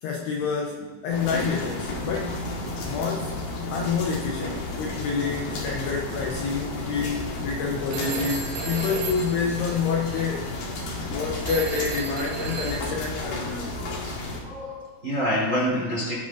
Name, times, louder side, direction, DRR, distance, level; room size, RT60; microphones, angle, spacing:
voice 1, 0.0-2.4 2.8-3.4 3.7-10.5 11.0-13.7, left 5 dB, 80° left, 0 dB, 2.5 m, -28 dB
sound 1, 1.1-14.4, left 2 dB, 60° left, 2.8 m, -32 dB
Telephone, 7.9-10.3 11.5-13.2, right 5 dB, 75° right, 3.3 m, -34 dB
voice 2, 14.4-16.2, equal, 25° right, -5 dB, 2.0 m, -27 dB
18.5 x 8.1 x 2.5 m, 1.4 s
omnidirectional pair, 5.7 m